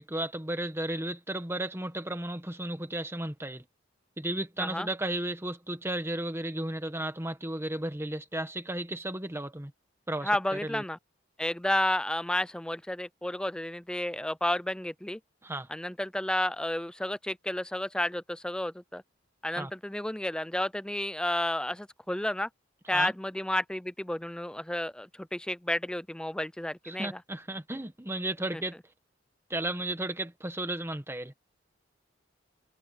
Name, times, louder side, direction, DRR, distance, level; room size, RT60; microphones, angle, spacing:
voice 1, 0.0-3.6 4.2-9.7 10.1-10.8 15.4-15.7 19.6-19.7 22.9-23.1 26.8-28.8 29.5-31.4, right 1 dB, 15° right, 1.4 m, -34 dB
voice 2, 10.2-11.0 11.4-15.2 15.7-19.0 19.4-22.5 22.9-27.2 28.5-28.6, left 1 dB, 5° left, 0.4 m, -31 dB
head